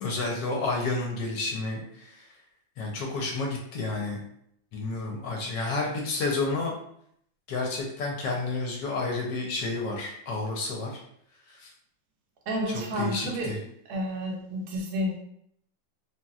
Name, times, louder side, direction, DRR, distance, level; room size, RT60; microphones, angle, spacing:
voice 1, 0.0-2.2 2.8-4.2 4.7-6.7 7.5-11.0 11.5-11.7 12.7-13.6, left 3 dB, 70° left, 0 dB, 1.1 m, -30 dB
voice 2, 12.5-13.5 13.9-15.2, equal, 65° right, 0 dB, 1.1 m, -30 dB
3.0 x 2.8 x 2.3 m, 0.71 s
omnidirectional pair, 2.2 m